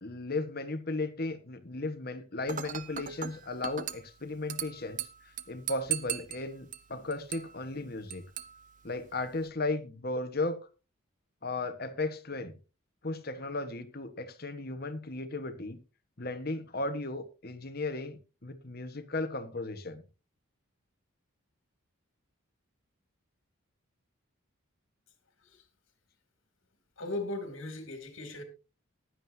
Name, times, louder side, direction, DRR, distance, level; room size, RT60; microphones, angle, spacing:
voice 1, 0.0-5.1 5.5-8.2 8.8-10.6 11.4-12.6 13.0-15.8 16.2-20.0, left 2 dB, 45° left, 1.4 m, -35 dB
Dishes pots and pans / Glass, 2.5-9.5, right 9 dB, 35° right, 0.8 m, -40 dB
voice 2, 27.0-28.4, left 2 dB, 65° left, 3.0 m, -37 dB
15.5 x 11.5 x 2.8 m
head